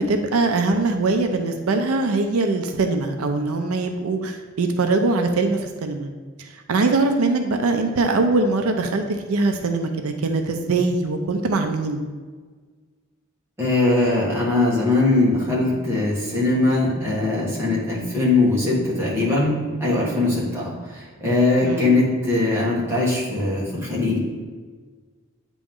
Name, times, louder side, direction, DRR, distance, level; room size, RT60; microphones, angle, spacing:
voice 1, 0.0-6.1 6.7-12.0 21.6-21.9, right 3 dB, 85° right, 6 dB, 0.5 m, -22 dB
voice 2, 13.6-24.2, left 2 dB, 10° right, -6 dB, 1.5 m, -21 dB
8.6 x 3.0 x 3.7 m, 1.5 s
head